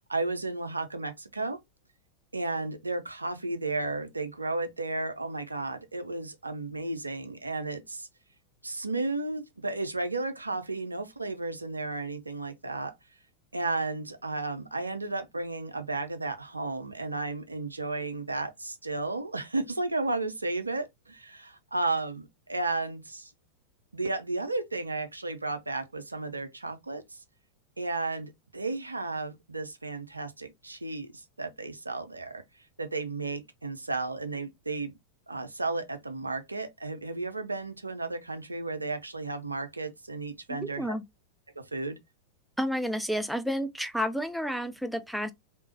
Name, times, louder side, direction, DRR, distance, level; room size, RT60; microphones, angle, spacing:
voice 1, 0.0-1.6 2.3-8.1 8.6-12.9 13.5-23.3 23.9-27.2 27.8-32.4 32.8-35.0 35.3-41.0 41.6-42.0, right 3 dB, 80° right, 0.5 m, -33 dB
voice 2, 40.5-41.0 42.6-45.3, equal, ahead, 0.4 m, -31 dB
3.4 x 2.8 x 2.8 m
figure-of-eight pair, 90°, 0 cm